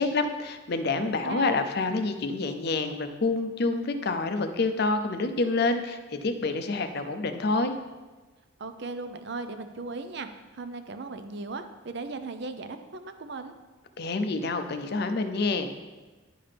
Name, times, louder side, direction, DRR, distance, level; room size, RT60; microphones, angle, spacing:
voice 1, 0.0-7.7 14.0-15.7, left 3 dB, 50° left, 8 dB, 0.5 m, -27 dB
voice 2, 1.0-1.5 8.6-13.5, right 3 dB, 55° right, 9 dB, 0.5 m, -37 dB
10.0 x 5.7 x 3.4 m, 1.2 s
head